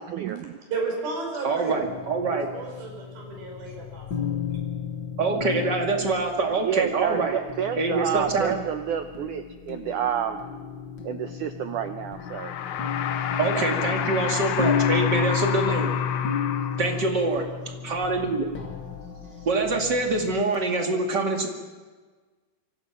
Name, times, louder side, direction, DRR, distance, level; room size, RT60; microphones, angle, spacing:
voice 1, 0.0-0.6 6.0-6.1 6.6-10.4 11.0-12.5, right 9 dB, 90° right, 7 dB, 1.7 m, -29 dB
voice 2, 0.7-1.8 2.2-4.3, right 3 dB, 60° right, 1 dB, 7.5 m, -33 dB
voice 3, 1.4-2.5 5.2-7.3 7.8-8.5 13.4-15.9 16.8-18.5 19.4-21.5, right 3 dB, 35° right, 2 dB, 2.2 m, -25 dB
sound 1, 1.8-20.4, left 7 dB, 50° left, 1.3 m, -32 dB
sound 2, 12.1-17.2, left 9 dB, 80° left, 1.7 m, -30 dB
26.5 x 24.0 x 6.0 m, 1.4 s
omnidirectional pair, 4.8 m